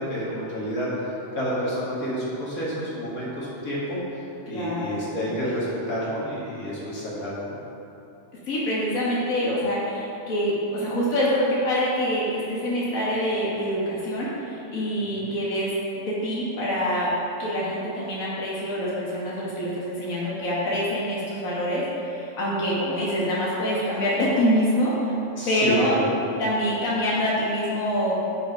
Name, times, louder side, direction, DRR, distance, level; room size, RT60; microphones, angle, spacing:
voice 1, 0.0-4.0 4.4-7.6 15.1-15.3 25.4-26.0, equal, 30° left, -8 dB, 1.8 m, -29 dB
voice 2, 4.5-5.0 8.4-17.1 17.4-25.1 25.5-26.0 26.4-28.2, equal, 70° left, -7 dB, 0.8 m, -25 dB
8.6 x 5.6 x 5.5 m, 2.8 s
omnidirectional pair, 3.9 m